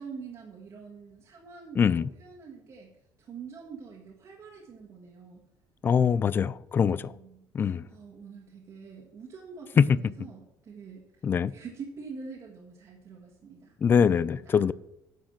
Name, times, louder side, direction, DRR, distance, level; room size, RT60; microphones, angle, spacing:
voice 1, 0.0-2.9 3.2-5.4 6.9-7.4 7.9-11.0 11.5-14.6, right 5 dB, 40° right, -3 dB, 1.8 m, -45 dB
voice 2, 1.8-2.1 5.8-7.1 7.5-7.9 9.8-10.0 11.2-11.5 13.8-14.7, left 7 dB, 25° left, 19 dB, 0.3 m, -23 dB
9.5 x 6.5 x 6.5 m, 0.81 s
cardioid pair, 150°, 8 cm